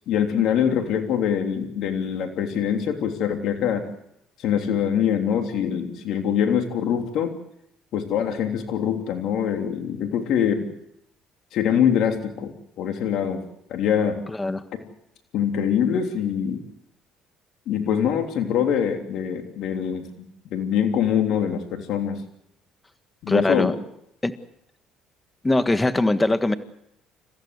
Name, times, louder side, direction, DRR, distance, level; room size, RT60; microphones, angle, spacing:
voice 1, 0.1-3.9 4.4-7.3 7.9-10.7 11.5-13.4 13.7-14.2 15.3-16.6 17.7-20.1 20.5-22.2 23.2-23.7, left 8 dB, 70° left, 5 dB, 3.2 m, -24 dB
voice 2, 14.3-14.6 23.3-23.7 24.2-24.3 25.4-26.5, left 2 dB, 15° left, 10 dB, 1.6 m, -21 dB
29.0 x 15.5 x 8.1 m, 0.78 s
supercardioid pair, 75°, 0 cm